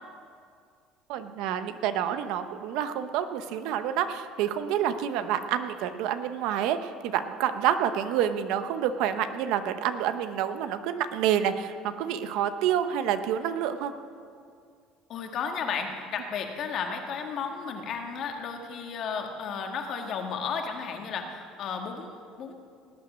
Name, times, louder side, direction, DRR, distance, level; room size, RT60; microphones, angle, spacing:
voice 1, 1.1-13.9, right 9 dB, 75° right, 10 dB, 0.8 m, -28 dB
voice 2, 15.1-22.5, left 6 dB, 50° left, 3 dB, 1.7 m, -33 dB
18.5 x 8.5 x 6.2 m, 2.2 s
cardioid pair, 130°, 0 cm